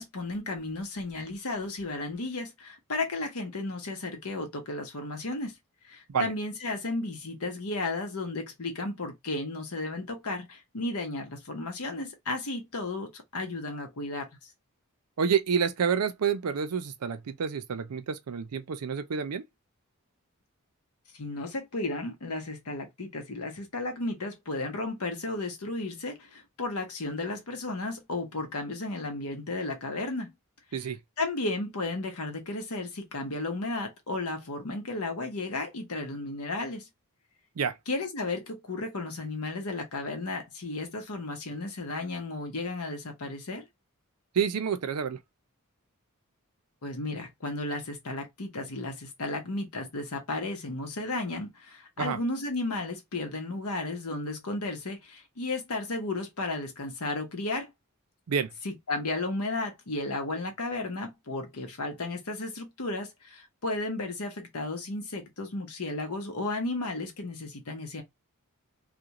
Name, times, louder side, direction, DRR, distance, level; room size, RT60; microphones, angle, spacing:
voice 1, 0.0-5.5 5.8-14.3 21.2-30.3 31.2-36.9 37.9-43.7 46.8-57.7 58.6-68.0, left 2 dB, 75° left, 0.9 m, -34 dB
voice 2, 15.2-19.4 30.7-31.0 37.6-37.8 44.3-45.2 52.0-52.2 58.3-58.5, right 6 dB, 90° right, 0.5 m, -28 dB
2.4 x 2.2 x 2.8 m
head